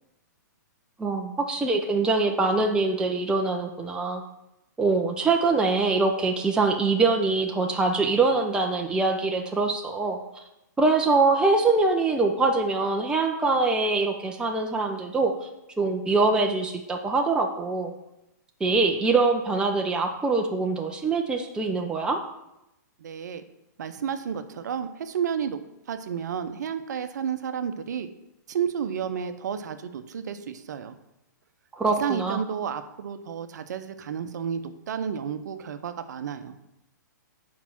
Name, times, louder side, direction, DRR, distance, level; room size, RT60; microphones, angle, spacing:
voice 1, 1.0-4.2 4.8-10.2 10.8-15.3 15.8-17.9 18.6-22.2 31.7-32.4, right 3 dB, 10° right, 2 dB, 0.6 m, -23 dB
voice 2, 23.0-23.4 23.8-25.6 25.9-28.1 28.5-31.0 31.9-36.6, right 7 dB, 65° right, 10 dB, 0.7 m, -31 dB
6.0 x 4.8 x 5.9 m, 0.89 s
hypercardioid pair, 125°, 10 cm